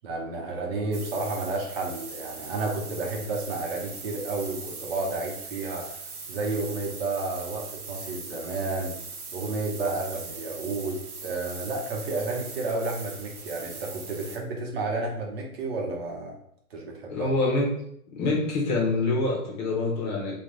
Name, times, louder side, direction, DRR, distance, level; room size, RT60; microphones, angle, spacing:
voice 1, 0.0-6.0 6.3-8.9 9.3-16.4 16.7-17.3, right 3 dB, 45° right, -1 dB, 1.0 m, -31 dB
sound 1, 0.9-14.4, right 4 dB, 85° right, 0.9 m, -40 dB
voice 2, 17.1-17.7 18.1-20.4, left 2 dB, 30° left, -2 dB, 1.0 m, -25 dB
3.6 x 2.4 x 3.1 m, 0.72 s
hypercardioid pair, 125°, 43 cm